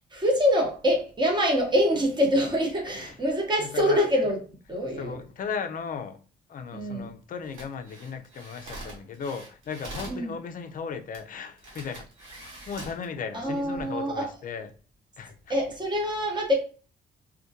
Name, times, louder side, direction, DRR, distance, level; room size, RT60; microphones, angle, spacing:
voice 1, 0.1-4.4 4.7-5.2 6.7-7.1 10.1-10.3 13.3-14.3 15.5-16.5, equal, 20° right, 0.8 m, -25 dB
voice 2, 3.6-4.1 5.0-6.2 6.5-12.1 12.4-14.7 15.2-15.6, left 6 dB, 45° left, 0.4 m, -36 dB
sound 1, 7.4-10.2 11.1-11.2 11.6-13.0 13.6-13.8, right 1 dB, 85° right, 0.9 m, -43 dB
2.2 x 2.1 x 2.7 m
cardioid pair, 90°, 20 cm